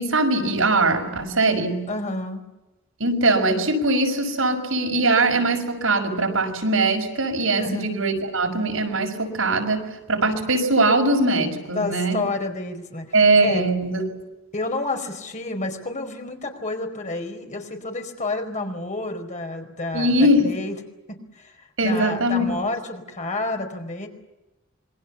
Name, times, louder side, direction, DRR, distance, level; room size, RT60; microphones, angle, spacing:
voice 1, 0.0-1.9 3.0-12.2 13.1-14.1 19.9-20.5 21.8-22.5, right 2 dB, 75° right, 3 dB, 5.9 m, -21 dB
voice 2, 1.9-2.4 7.6-7.9 11.7-13.0 13.4-13.6 14.5-20.7 21.1-21.6 21.8-24.1, left 2 dB, 35° left, 4 dB, 4.7 m, -29 dB
27.0 x 23.5 x 7.2 m, 1.0 s
head